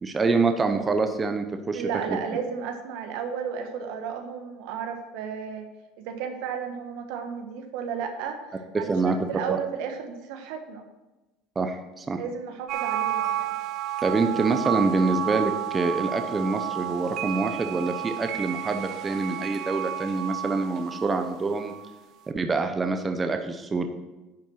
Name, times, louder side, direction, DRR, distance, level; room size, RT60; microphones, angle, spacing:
voice 1, 0.0-1.8 2.1-2.2 8.7-9.6 11.6-12.2 14.0-21.7 22.3-23.9, right 3 dB, 20° right, 6 dB, 0.8 m, -26 dB
voice 2, 1.7-5.7 6.0-8.4 8.7-10.8 12.2-13.6, right 7 dB, 75° right, 5 dB, 1.3 m, -33 dB
sound 1, 12.7-22.0, right 11 dB, 55° right, 0.8 m, -31 dB
10.5 x 4.5 x 6.3 m, 1.1 s
supercardioid pair, 105°, 0 cm